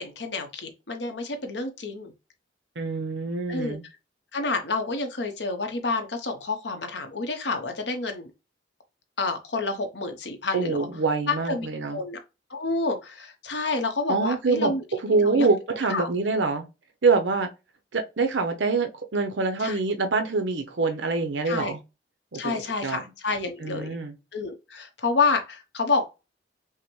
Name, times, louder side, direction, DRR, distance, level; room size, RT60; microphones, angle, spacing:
voice 1, 0.0-2.1 3.5-3.8 4.3-8.3 9.2-10.8 11.3-12.2 12.5-14.8 15.1-15.5 15.9-16.1 19.6-19.8 21.5-21.7 22.3-23.9 24.3-26.0, left 3 dB, 75° left, 0.9 m, -29 dB
voice 2, 2.8-3.8 10.5-12.0 14.1-16.6 17.0-17.5 17.9-21.8 22.3-23.0 23.6-24.2, right 4 dB, 85° right, 0.8 m, -25 dB
5.6 x 2.1 x 3.2 m
head